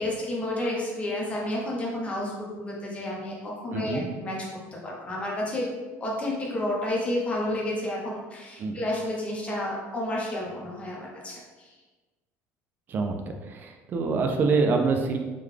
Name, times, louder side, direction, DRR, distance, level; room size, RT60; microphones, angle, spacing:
voice 1, 0.0-4.4 4.8-5.7 6.0-11.7, left 1 dB, 20° left, -3 dB, 0.7 m, -31 dB
voice 2, 3.7-4.0 8.6-8.7 12.9-15.2, right 4 dB, 30° right, 4 dB, 0.4 m, -26 dB
3.7 x 2.3 x 3.2 m, 1.2 s
cardioid pair, 155°, 6 cm